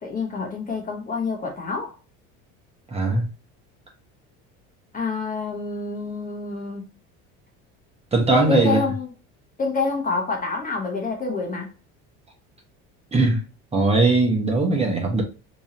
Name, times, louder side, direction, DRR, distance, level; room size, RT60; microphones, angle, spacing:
voice 1, 0.0-1.9 4.9-6.9 8.5-9.1 9.6-11.7, left 4 dB, 25° left, 1.1 m, -27 dB
voice 2, 2.9-3.2 8.1-8.8 13.1-13.4 13.7-15.2, right 2 dB, 20° right, 1.1 m, -19 dB
3.5 x 3.1 x 2.7 m
supercardioid pair, 110°, 30 cm